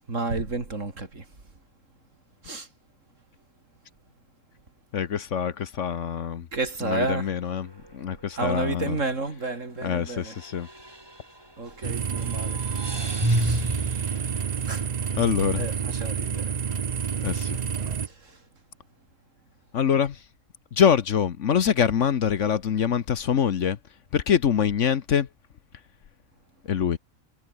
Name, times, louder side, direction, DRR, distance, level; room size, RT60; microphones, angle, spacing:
voice 1, 0.1-1.3 2.4-2.7 6.5-7.3 8.4-10.3 11.6-12.7 13.3-13.6 14.7-14.9 15.6-16.5 18.0-18.4, right 3 dB, 60° right, 4.1 m, -31 dB
voice 2, 4.9-6.5 6.8-7.7 7.9-9.0 9.8-10.7 13.3-13.4 15.2-15.7 17.2-17.6 19.7-20.2 20.7-23.8 24.1-25.3 26.6-27.0, left 8 dB, 60° left, 1.3 m, -24 dB
sound 1, 7.6-8.0 8.3-8.4 10.3-11.7 12.1-15.1, right 1 dB, 15° right, 3.8 m, -30 dB
sound 2, 11.8-18.1, right 7 dB, 40° right, 0.6 m, -29 dB
omnidirectional pair, 1.5 m